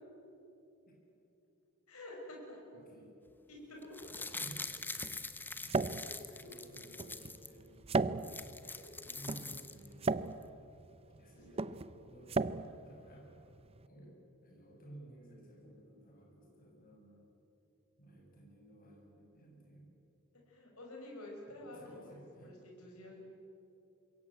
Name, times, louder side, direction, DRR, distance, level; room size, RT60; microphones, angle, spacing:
voice 1, 1.9-2.6 3.5-4.1 5.9-6.1 6.4-6.5 8.6-8.9 20.5-23.2, left 1 dB, 90° left, -1 dB, 5.6 m, -50 dB
voice 2, 2.7-3.1 4.1-4.7 5.5-5.9 6.2-8.5 9.0-10.1 11.2-13.3 13.9-17.2 18.0-19.9 21.5-22.6, right 1 dB, 40° left, -1 dB, 7.8 m, -55 dB
sound 1, 3.8-7.5 7.9-8.0 8.2-10.1 10.4-10.5, left 3 dB, 10° left, 1.0 m, -44 dB
sound 2, 4.0-13.9, right 3 dB, 30° right, 0.5 m, -38 dB
26.0 x 22.5 x 8.9 m, 2.9 s
head